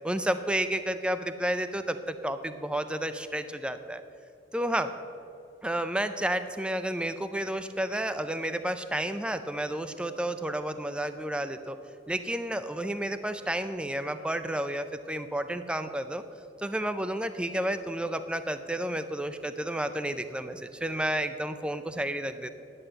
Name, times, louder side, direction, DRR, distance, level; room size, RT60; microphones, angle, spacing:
voice 1, 0.0-4.0 4.5-4.9 5.6-11.8 12.1-16.2 16.6-22.5, right 1 dB, 5° right, 10 dB, 0.4 m, -31 dB
10.0 x 7.6 x 7.8 m, 2.7 s
head